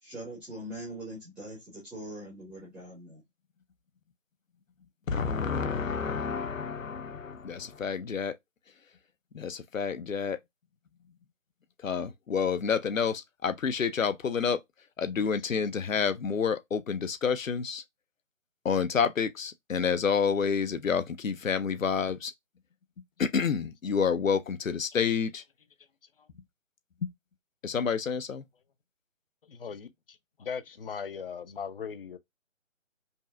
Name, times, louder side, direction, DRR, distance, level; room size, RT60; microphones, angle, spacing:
voice 1, 0.0-3.2, right 1 dB, ahead, 0.6 m, -42 dB
voice 2, 5.1-8.3 9.3-10.4 11.8-14.6 15.0-17.8 18.6-22.3 23.2-25.4 27.6-28.4, left 6 dB, 85° left, 0.7 m, -29 dB
voice 3, 29.4-32.2, left 6 dB, 45° left, 0.5 m, -39 dB
5.3 x 2.1 x 2.5 m
figure-of-eight pair, 150°, 39 cm